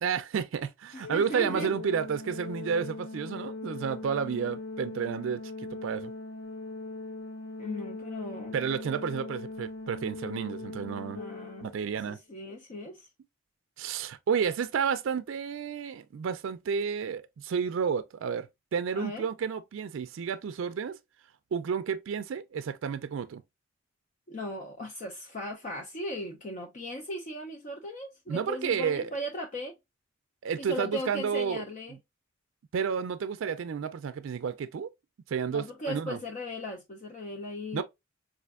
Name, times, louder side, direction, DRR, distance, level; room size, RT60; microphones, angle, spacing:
voice 1, 0.0-5.4 5.8-6.1 8.5-11.2 11.6-12.2 13.8-20.9 21.5-23.4 28.3-29.1 30.4-31.6 32.7-34.9 35.3-36.2 37.7-37.8, right 6 dB, 75° right, 0.4 m, -31 dB
voice 2, 0.9-1.7 7.6-8.6 11.1-11.7 12.1-13.1 18.9-19.2 24.3-29.7 30.6-31.9 35.5-37.8, left 1 dB, 40° left, 0.5 m, -37 dB
Organ, 1.0-11.9, left 2 dB, 60° left, 0.9 m, -40 dB
4.2 x 2.5 x 2.3 m
head